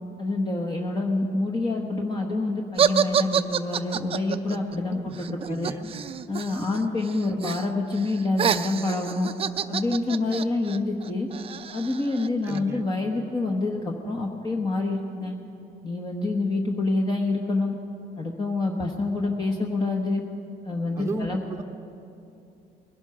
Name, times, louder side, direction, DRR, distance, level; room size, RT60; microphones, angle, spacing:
voice 1, 0.2-5.7 6.3-9.3 9.7-11.3 11.7-15.3 15.8-17.7 18.2-20.2 20.6-21.4, left 2 dB, 25° left, 0 dB, 1.2 m, -27 dB
sound 1, 2.8-6.8 7.0-7.7 8.0-12.6, right 8 dB, 35° right, 0.5 m, -27 dB
voice 2, 4.9-5.9 6.4-6.7 12.4-12.9 21.0-21.6, right 2 dB, 15° right, 3 dB, 0.9 m, -35 dB
20.5 x 11.5 x 5.7 m, 2.7 s
cardioid pair, 110°, 17 cm